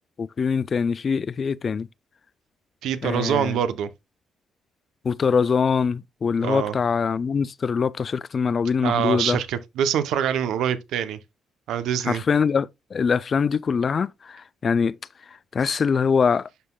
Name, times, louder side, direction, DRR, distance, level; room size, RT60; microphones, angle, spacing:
voice 1, 0.2-1.9 3.0-3.6 5.0-9.4 12.1-15.0 15.5-16.5, left 6 dB, 45° left, 0.3 m, -23 dB
voice 2, 2.8-3.9 6.4-6.7 8.8-11.2 11.7-12.2, right 9 dB, 80° right, 0.7 m, -25 dB
11.5 x 3.8 x 2.2 m
cardioid pair, 90°, 0 cm